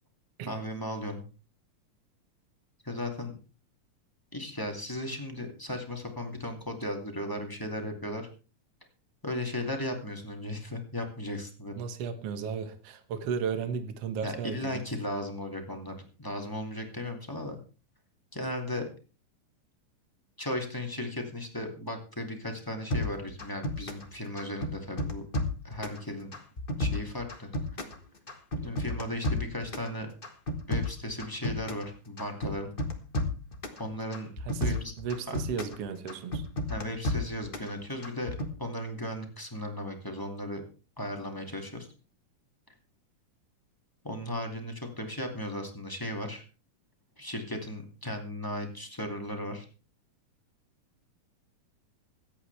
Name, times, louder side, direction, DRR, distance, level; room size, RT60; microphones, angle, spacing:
voice 1, 0.5-1.2 2.8-3.3 4.3-8.3 9.2-11.7 14.2-17.6 18.3-18.8 20.4-25.2 25.6-26.4 26.8-27.5 27.8-27.9 28.6-30.1 30.7-32.7 33.8-34.3 34.6-34.9 35.3-35.4 36.7-40.6 41.0-41.9 44.0-46.4 47.2-49.7, left 1 dB, 10° left, 1.9 m, -36 dB
voice 2, 11.8-14.8 34.5-36.5, right 6 dB, 55° right, 2.2 m, -34 dB
sound 1, 22.9-24.1 24.4-26.0 26.3-28.0 28.3-29.9 30.2-31.9 32.2-33.8 34.1-35.8 36.1-37.7 38.0-38.5, left 1 dB, 30° left, 1.0 m, -32 dB
25.5 x 8.7 x 3.4 m
omnidirectional pair, 3.6 m